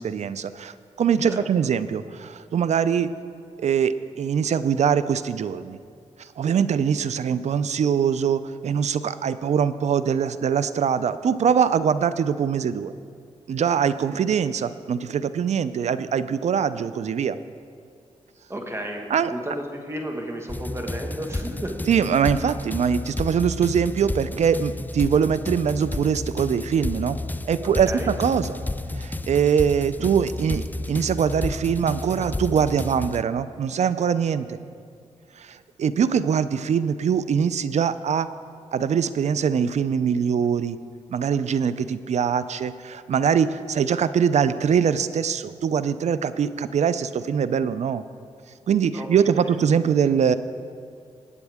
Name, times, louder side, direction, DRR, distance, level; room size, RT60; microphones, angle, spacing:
voice 1, 0.0-3.1 3.6-5.8 6.2-12.9 13.5-17.4 19.1-19.3 21.9-27.2 27.4-28.6 28.9-34.6 35.4-38.3 38.7-40.8 41.1-48.0 48.7-50.3, right 7 dB, 65° right, 14 dB, 0.5 m, -23 dB
voice 2, 18.5-21.8 27.6-28.1 48.9-49.6, right 1 dB, 20° right, 2 dB, 1.5 m, -33 dB
sound 1, 20.5-33.2, left 2 dB, 15° left, 0.4 m, -32 dB
20.0 x 8.3 x 3.6 m, 2.3 s
cardioid pair, 70°, 13 cm